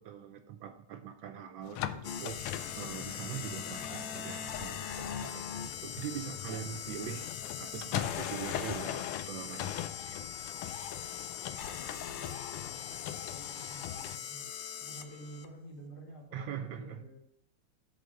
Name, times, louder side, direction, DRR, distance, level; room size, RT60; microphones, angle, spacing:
voice 1, 0.0-2.5 2.8-5.5 5.8-7.3 7.6-10.3 16.3-17.1, right 9 dB, 75° right, 7 dB, 1.2 m, -42 dB
sound 1, 1.6-14.2, left 11 dB, 90° left, 1.5 m, -41 dB
sound 2, 2.0-15.5, left 8 dB, 70° left, 1.2 m, -41 dB
voice 2, 12.2-14.5 14.8-17.2, right 1 dB, 50° left, -2 dB, 2.8 m, -50 dB
8.5 x 4.2 x 6.4 m, 0.74 s
omnidirectional pair, 2.4 m